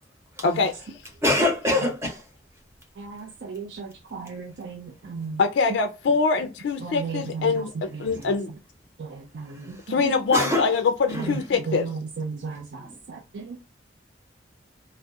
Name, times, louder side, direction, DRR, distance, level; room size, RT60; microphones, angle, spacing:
voice 1, 1.2-2.3 9.5-9.8 10.3-10.7 11.1-11.4 12.8-12.9, left 1 dB, 15° right, 0.9 m, -25 dB
voice 2, 3.0-5.4 6.8-8.6 9.0-10.1 11.1-13.6, right 4 dB, 75° right, 0.4 m, -35 dB
voice 3, 5.4-7.7 8.0-8.5 9.9-10.8 11.3-11.8, left 4 dB, 75° left, 0.3 m, -23 dB
2.3 x 2.0 x 2.6 m
head